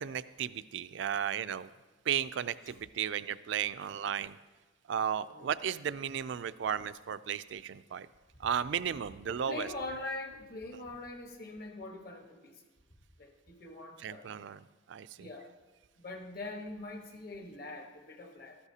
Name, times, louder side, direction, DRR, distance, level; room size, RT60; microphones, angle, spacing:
voice 1, 0.0-1.7 2.1-4.4 4.9-8.1 8.4-9.7 14.0-15.3, right 8 dB, 65° right, 15 dB, 0.3 m, -34 dB
voice 2, 9.3-12.6 13.2-14.3 15.2-15.5 16.0-18.6, left 2 dB, 50° left, 3 dB, 1.2 m, -43 dB
13.0 x 13.0 x 2.8 m, 1.2 s
head